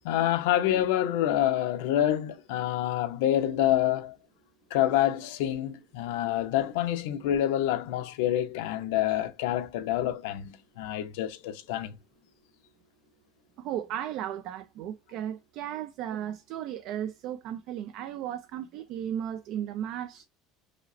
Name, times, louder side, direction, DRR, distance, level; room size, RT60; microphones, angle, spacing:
voice 1, 0.0-4.1 4.7-12.0, left 12 dB, 85° left, 0.6 m, -27 dB
voice 2, 13.6-20.3, right 10 dB, 45° right, 0.3 m, -35 dB
4.9 x 2.0 x 2.5 m
cardioid pair, 180°, 0 cm